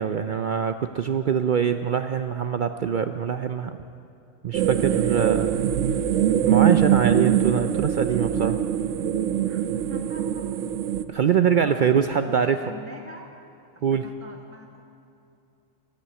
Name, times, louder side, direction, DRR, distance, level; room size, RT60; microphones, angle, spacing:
voice 1, 0.0-3.8 4.4-5.5 6.5-8.6 11.1-12.6 13.8-14.1, right 7 dB, 60° right, 9 dB, 0.5 m, -23 dB
sound 1, 4.5-11.0, right 10 dB, 80° right, 1.0 m, -23 dB
voice 2, 9.4-10.5 11.1-13.3 13.7-14.8, equal, 10° left, 2 dB, 1.1 m, -43 dB
14.0 x 11.5 x 8.6 m, 2.7 s
omnidirectional pair, 1.3 m